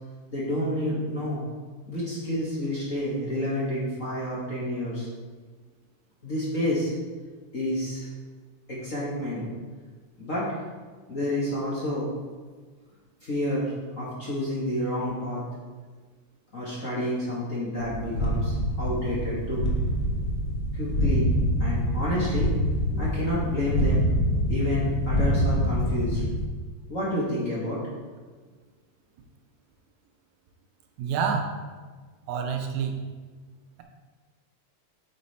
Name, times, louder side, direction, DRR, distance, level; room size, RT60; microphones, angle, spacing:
voice 1, 0.3-1.4 1.8-5.1 6.2-6.9 7.5-8.1 8.7-9.4 10.2-10.6 11.1-12.1 13.2-15.4 16.5-19.6 20.7-21.3 21.6-22.5 22.9-24.1 24.5-26.2 26.9-27.8, left 1 dB, 35° left, -7 dB, 1.6 m, -29 dB
sound 1, 17.8-26.4, equal, 65° left, 1.1 m, -26 dB
voice 2, 31.0-31.6 32.3-33.0, right 6 dB, 80° right, 3 dB, 2.1 m, -27 dB
8.6 x 5.6 x 4.2 m, 1.4 s
omnidirectional pair, 3.3 m